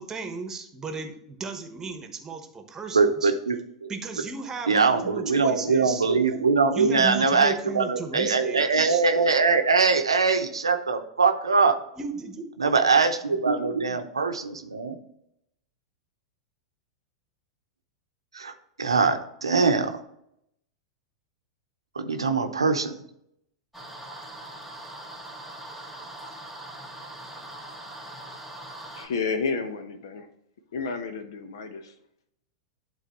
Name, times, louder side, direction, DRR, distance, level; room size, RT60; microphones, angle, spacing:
voice 1, 0.0-3.3 3.9-6.0 6.7-9.0 12.0-12.7 13.6-14.0, right 4 dB, 20° right, 6 dB, 1.2 m, -35 dB
voice 2, 2.9-3.5 3.8-3.9 4.7-11.8 12.6-15.0 18.3-18.5 18.8-20.0 21.9-23.0, right 4 dB, 80° right, 7 dB, 0.8 m, -22 dB
sound 1, 23.7-29.1, right 1 dB, ahead, 2.0 m, -41 dB
voice 3, 28.9-30.3 30.7-31.9, left 4 dB, 60° left, 8 dB, 1.0 m, -31 dB
11.5 x 4.0 x 3.1 m, 0.76 s
figure-of-eight pair, 90°, 3 cm